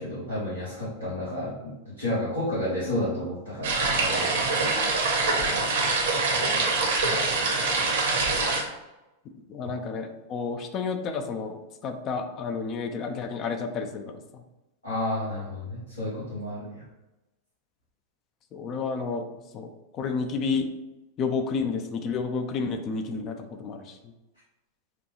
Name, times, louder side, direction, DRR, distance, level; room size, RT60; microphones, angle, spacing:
voice 1, 0.0-1.5 2.0-4.4 14.8-16.8, left 1 dB, 80° left, -12 dB, 1.4 m, -31 dB
sound 1, 3.6-8.6, right 3 dB, 60° right, 0.8 m, -24 dB
voice 2, 9.5-11.6 11.8-14.4 18.5-19.3 19.5-20.7 21.2-24.0, left 4 dB, 35° left, 6 dB, 0.4 m, -31 dB
4.8 x 2.3 x 3.1 m, 1.0 s
figure-of-eight pair, 90°, 0 cm